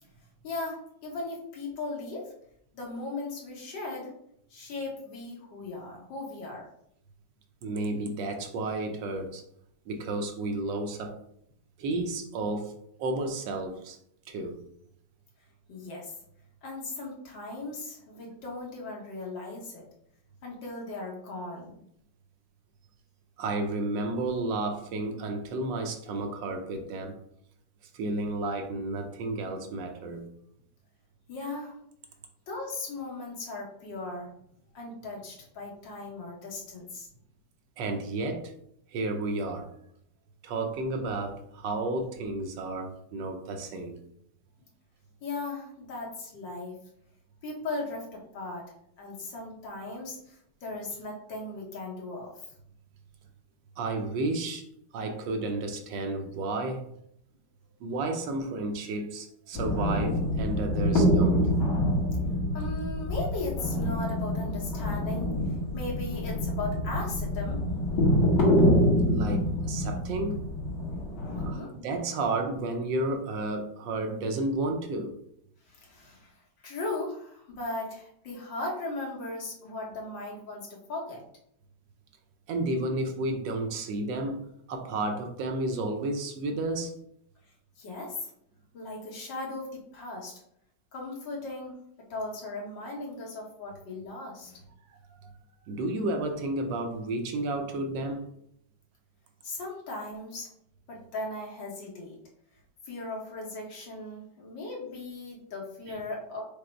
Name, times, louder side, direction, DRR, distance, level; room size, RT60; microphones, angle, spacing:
voice 1, 0.4-2.3 2.7-4.1 4.5-6.7 15.7-16.2 16.6-19.9 20.4-21.8 31.3-31.8 32.5-34.3 34.7-37.1 45.2-46.8 47.4-48.7 49.0-52.5 62.5-65.3 65.7-67.6 71.4-71.7 75.7-76.4 76.6-81.2 87.8-88.3 88.7-90.4 90.9-91.8 92.1-94.6 99.4-100.5 100.9-102.2 102.9-106.4, left 2 dB, 85° left, -2 dB, 1.9 m, -37 dB
voice 2, 7.6-9.4 9.9-11.2 11.8-12.7 13.0-14.0 14.3-14.6 23.4-27.2 27.9-30.3 37.8-38.5 38.9-39.7 40.4-44.0 53.8-54.6 54.9-56.8 57.8-61.4 69.0-70.4 71.4-75.1 82.5-84.4 84.7-86.9 95.2-95.3 95.7-98.3, right 2 dB, 85° right, 4 dB, 1.4 m, -32 dB
sound 1, 59.5-71.5, equal, 70° left, 1.8 m, -26 dB
5.1 x 2.0 x 4.4 m, 0.73 s
omnidirectional pair, 2.0 m